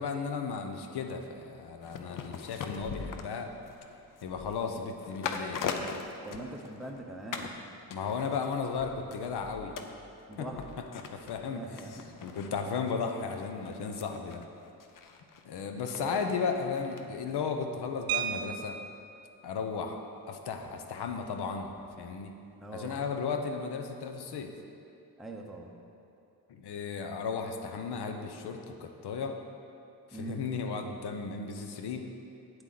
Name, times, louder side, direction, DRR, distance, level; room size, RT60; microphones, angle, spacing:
voice 1, 0.0-3.5 4.2-5.9 7.9-9.7 10.4-10.5 10.9-11.7 12.2-14.4 15.4-18.8 19.4-21.7 22.0-22.3 22.7-24.5 26.5-29.4 30.1-32.1, left 5 dB, 80° left, 5 dB, 0.8 m, -35 dB
sound 1, 1.8-7.0 7.3-7.6 7.9-17.0 17.3-17.4, left 5 dB, 55° left, 0.6 m, -42 dB
voice 2, 6.2-7.6 10.3-10.8 11.5-12.4 15.7-16.3 22.6-23.0 25.2-25.8 30.1-30.4, right 2 dB, ahead, 0 dB, 0.6 m, -42 dB
sound 2, 18.1-19.2 20.6-20.7 21.1-21.3 21.6-21.9, right 9 dB, 70° right, 0.5 m, -35 dB
9.0 x 7.8 x 3.9 m, 2.6 s
wide cardioid pair, 165°, 38 cm